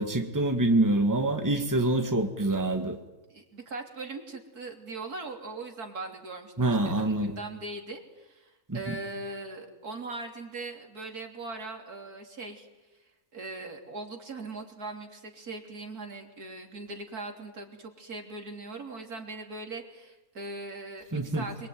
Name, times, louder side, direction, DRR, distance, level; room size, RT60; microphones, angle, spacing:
voice 1, 0.0-3.0 6.6-7.4 8.7-8.9 21.1-21.5, right 2 dB, 10° right, 5 dB, 2.0 m, -26 dB
voice 2, 3.3-12.7 13.0-21.7, right 3 dB, 85° right, 3 dB, 3.8 m, -40 dB
27.5 x 23.0 x 9.4 m, 1.1 s
omnidirectional pair, 1.6 m